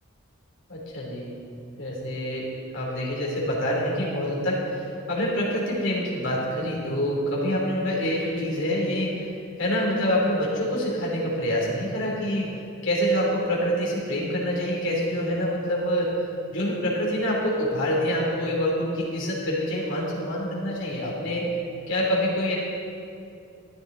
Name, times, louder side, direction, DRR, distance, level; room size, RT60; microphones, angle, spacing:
voice 1, 0.7-1.4 1.8-9.3 9.6-12.6 12.8-16.2 16.5-21.5 21.9-22.6, equal, 65° left, -4 dB, 3.1 m, -26 dB
14.0 x 10.5 x 3.9 m, 2.5 s
head